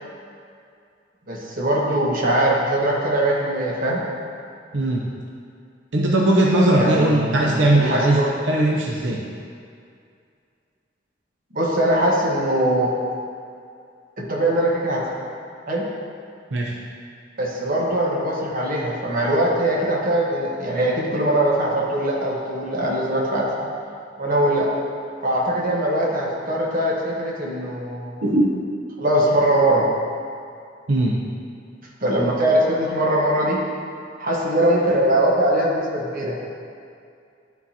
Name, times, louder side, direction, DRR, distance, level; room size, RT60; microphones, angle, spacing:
voice 1, 1.3-4.0 6.7-8.3 11.5-12.9 14.2-15.0 15.7-15.8 17.4-23.4 24.2-24.7 25.2-28.2 29.0-29.9 32.0-33.6 34.2-36.4, right 1 dB, 50° right, -4 dB, 1.3 m, -21 dB
voice 2, 4.7-5.1 5.9-9.2 16.5-16.7 28.2-28.6 30.9-31.2, right 1 dB, 85° right, -2 dB, 0.7 m, -19 dB
11.5 x 3.9 x 2.8 m, 2.3 s
head